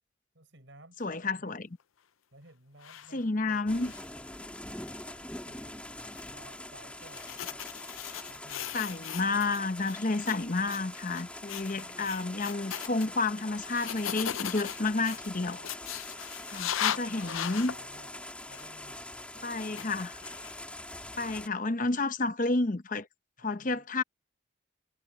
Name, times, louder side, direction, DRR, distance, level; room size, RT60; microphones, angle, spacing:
voice 1, 0.3-1.6 2.3-4.0 5.4-7.6 8.3-8.8 11.6-12.3 15.0-15.1 16.9-19.9 23.4-23.8, right 2 dB, 65° right, 6.0 m, -56 dB
voice 2, 1.0-1.7 3.1-3.9 8.7-15.6 16.5-17.7 19.4-20.2 21.2-23.1 23.4-24.0, left 3 dB, 40° left, 0.8 m, -30 dB
sound 1, 2.8-3.1 3.5-4.2 4.9-5.1 6.0-6.2 7.0-9.6 9.8-10.4 10.6-10.8 11.1-11.2 11.5-13.1 13.7-17.8 18.5-18.7 19.7-20.7, left 10 dB, 85° left, 0.6 m, -37 dB
sound 2, 3.7-21.5, left 1 dB, 5° left, 2.8 m, -44 dB
head